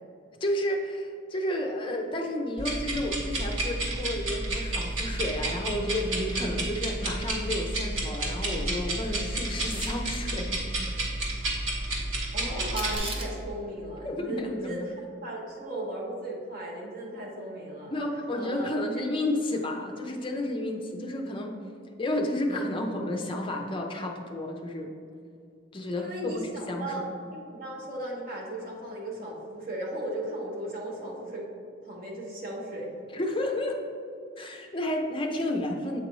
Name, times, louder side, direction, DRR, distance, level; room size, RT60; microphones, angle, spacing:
voice 1, 0.4-10.7 14.0-14.9 17.9-21.5 22.0-24.9 25.7-26.9 33.1-33.8 34.4-36.0, left 1 dB, 25° left, 2 dB, 0.5 m, -31 dB
sound 1, 2.6-13.0, right 2 dB, 85° right, 1.3 m, -31 dB
Camera, 9.5-10.2 12.6-13.4, right 2 dB, 25° right, 0.7 m, -37 dB
voice 2, 12.3-15.0 15.2-17.9 18.4-19.1 26.0-27.0 27.3-31.4 31.8-32.9, right 1 dB, 45° right, -2 dB, 1.1 m, -36 dB
8.0 x 4.0 x 3.0 m, 2.4 s
head